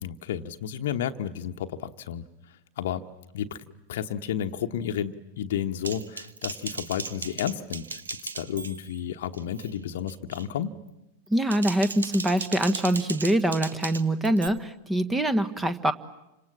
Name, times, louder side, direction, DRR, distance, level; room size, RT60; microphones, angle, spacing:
voice 1, 0.0-2.2 2.8-3.1 3.3-8.0 8.3-10.8, left 9 dB, 55° left, 6 dB, 1.1 m, -32 dB
Typing, 5.8-9.0 9.3-9.7 10.1-10.5 11.3-14.5, right 4 dB, 70° right, 1.3 m, -37 dB
voice 2, 11.3-15.9, right 1 dB, 10° right, 13 dB, 1.4 m, -24 dB
30.0 x 26.5 x 7.4 m, 0.95 s
figure-of-eight pair, 90°, 0 cm